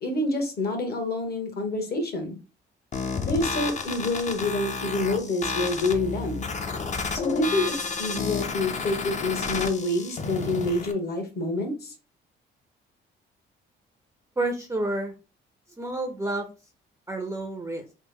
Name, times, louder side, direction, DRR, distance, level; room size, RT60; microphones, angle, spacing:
voice 1, 0.0-2.4 3.2-6.4 7.1-7.7 8.0-11.9, left 2 dB, 55° left, 3 dB, 1.2 m, -27 dB
sound 1, 2.9-10.9, left 4 dB, 35° left, 0.6 m, -31 dB
voice 2, 14.4-15.1 15.8-16.5 17.1-17.9, right 2 dB, 15° right, 5 dB, 0.5 m, -29 dB
3.2 x 2.0 x 3.5 m, 0.32 s
cardioid pair, 90°, 20 cm